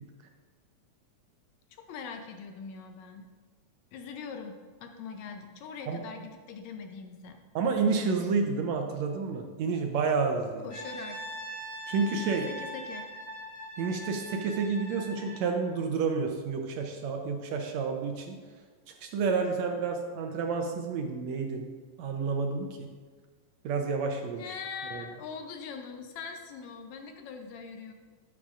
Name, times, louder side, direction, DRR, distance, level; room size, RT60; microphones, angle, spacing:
voice 1, 1.9-3.2 3.9-7.4 10.6-11.2 12.5-13.1 24.4-27.9, left 5 dB, 75° left, 5 dB, 1.9 m, -42 dB
voice 2, 7.6-10.7 11.9-12.5 13.8-18.4 19.0-21.7 22.0-22.9 23.6-24.4 24.9-25.0, right 5 dB, 75° right, 3 dB, 1.8 m, -30 dB
Brass instrument, 10.7-15.5, right 1 dB, 60° left, 3.5 m, -41 dB
13.0 x 7.2 x 2.5 m, 1.5 s
omnidirectional pair, 3.5 m